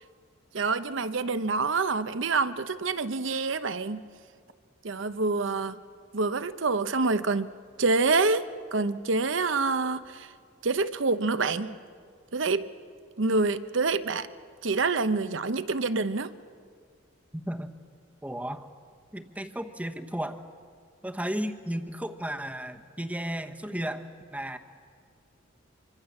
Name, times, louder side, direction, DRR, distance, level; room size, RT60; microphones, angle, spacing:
voice 1, 0.5-4.1 4.8-5.8 6.1-7.5 7.8-10.3 10.6-11.8 12.3-12.7 13.2-14.3 14.6-16.3, right 3 dB, 70° right, 12 dB, 0.9 m, -27 dB
voice 2, 17.3-17.7 18.2-18.7 19.1-20.4 21.0-24.6, equal, 5° right, 6 dB, 1.1 m, -34 dB
25.0 x 25.0 x 7.3 m, 2.1 s
head